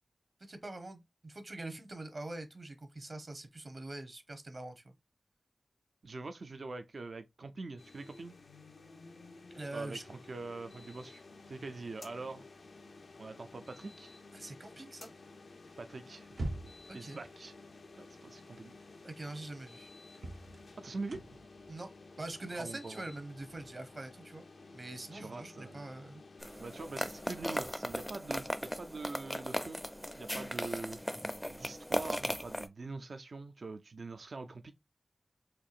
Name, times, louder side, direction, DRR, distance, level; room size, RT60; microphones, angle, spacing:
voice 1, 0.4-4.9 9.5-10.0 14.3-15.1 16.9-17.2 19.0-19.9 21.7-21.9 22.2-24.4 24.7-26.2, right 2 dB, 50° right, 0.8 m, -44 dB
voice 2, 6.0-8.3 9.7-11.2 11.5-12.4 13.2-14.1 15.8-16.3 16.9-17.5 18.0-18.7 20.8-21.2 22.6-23.0 25.1-25.8 26.6-29.8 30.2-31.0 31.5-34.7, right 3 dB, 70° right, 0.4 m, -44 dB
sound 1, 7.8-27.4, left 3 dB, 80° left, 0.5 m, -54 dB
sound 2, 16.2-17.0 18.8-18.9 19.3-19.4 20.1-23.7, right 2 dB, 90° right, 0.8 m, -43 dB
sound 3, 26.4-32.7, equal, 5° left, 0.4 m, -37 dB
4.4 x 2.7 x 2.4 m
wide cardioid pair, 60°, 0 cm